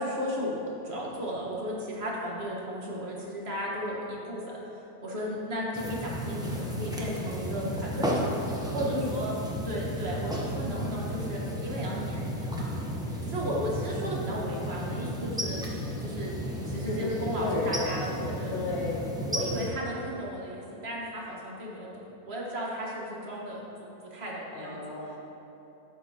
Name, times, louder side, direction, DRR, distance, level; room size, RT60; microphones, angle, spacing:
voice 1, 0.0-4.4 5.0-8.3 8.7-9.3 9.6-12.7 13.2-15.7 16.0-16.3 16.7-18.5 19.3-21.9 22.3-23.6 24.1-24.8, equal, 40° right, -4 dB, 1.6 m, -34 dB
sound 1, 5.7-19.7, equal, 5° right, 0.7 m, -33 dB
voice 2, 8.9-9.3 16.8-17.9 18.5-19.1 24.5-25.2, left 3 dB, 70° left, -3 dB, 1.2 m, -33 dB
11.0 x 8.7 x 2.9 m, 3.0 s
omnidirectional pair, 1.7 m